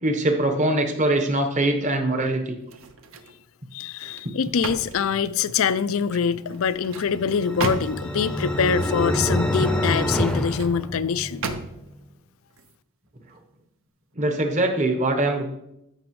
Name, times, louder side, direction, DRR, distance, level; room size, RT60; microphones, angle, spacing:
voice 1, 0.0-2.6 14.2-15.5, right 1 dB, 35° right, 1.0 m, -22 dB
sound 1, 2.6-3.4 3.8-5.8 6.5-8.2 10.0-10.8 11.4-12.0 12.5-12.7, right 3 dB, 60° right, 0.7 m, -34 dB
voice 2, 3.7-11.4, left 6 dB, 65° left, 0.4 m, -24 dB
sound 2, 7.0-11.5, left 1 dB, 5° left, 0.7 m, -26 dB
13.0 x 6.0 x 3.1 m
head